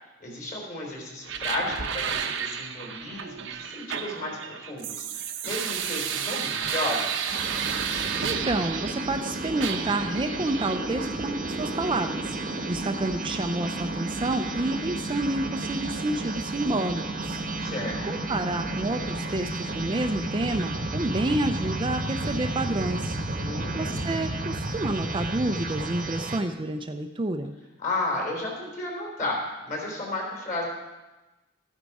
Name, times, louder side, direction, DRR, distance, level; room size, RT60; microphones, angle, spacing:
voice 1, 0.2-7.3 17.6-18.2 23.4-24.1 27.8-30.6, left 2 dB, 40° left, -1 dB, 3.7 m, -33 dB
sound 1, 1.2-9.2 9.6-10.8, right 7 dB, 70° right, 0.9 m, -32 dB
sound 2, 7.3-26.4, right 2 dB, 45° right, 1.0 m, -32 dB
voice 2, 8.2-17.7 18.0-27.5, right 2 dB, 25° right, 6 dB, 0.5 m, -29 dB
14.0 x 9.2 x 4.9 m, 1.1 s
head